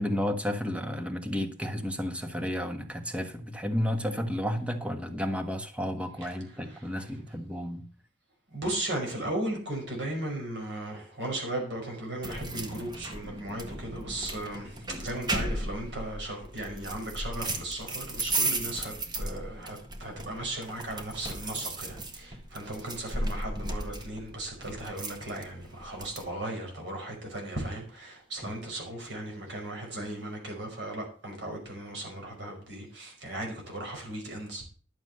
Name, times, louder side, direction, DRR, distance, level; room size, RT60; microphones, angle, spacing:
voice 1, 0.0-7.8, equal, 5° right, 1.4 m, -32 dB
voice 2, 6.2-7.2 8.5-34.6, right 1 dB, 65° right, 5.3 m, -36 dB
sound 1, 12.2-26.3, right 2 dB, 25° right, 1.6 m, -36 dB
12.0 x 7.3 x 6.5 m
head